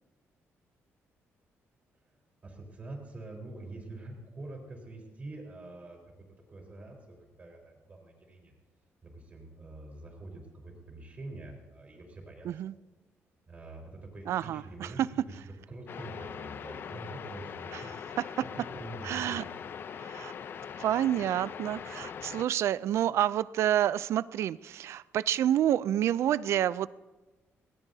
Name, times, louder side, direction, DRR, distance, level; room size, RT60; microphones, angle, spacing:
voice 1, 2.4-8.5 9.0-12.5 13.5-17.9 18.4-19.4, right 2 dB, 30° right, 0 dB, 4.0 m, -45 dB
voice 2, 14.3-15.1 17.7-17.8 18.2-18.3 19.0-19.4 20.0-20.3 20.8-26.9, right 11 dB, 65° right, 18 dB, 0.4 m, -28 dB
sound 1, 15.9-22.4, left 7 dB, 50° left, 0.5 m, -41 dB
22.0 x 18.0 x 2.7 m, 1.2 s
cardioid pair, 135°, 5 cm